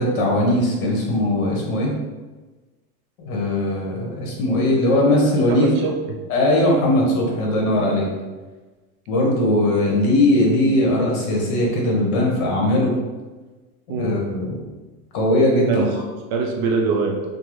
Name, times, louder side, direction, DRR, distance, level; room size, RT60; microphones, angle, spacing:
voice 1, 0.0-1.9 3.2-5.7 6.3-8.1 9.1-12.9 13.9-14.6 15.1-15.8, left 1 dB, 65° left, -1 dB, 1.1 m, -19 dB
voice 2, 5.5-6.2 13.9-14.2 15.7-16.0 16.3-17.2, right 4 dB, 45° right, 1 dB, 0.4 m, -23 dB
3.3 x 2.0 x 3.1 m, 1.2 s
supercardioid pair, 140°, 45 cm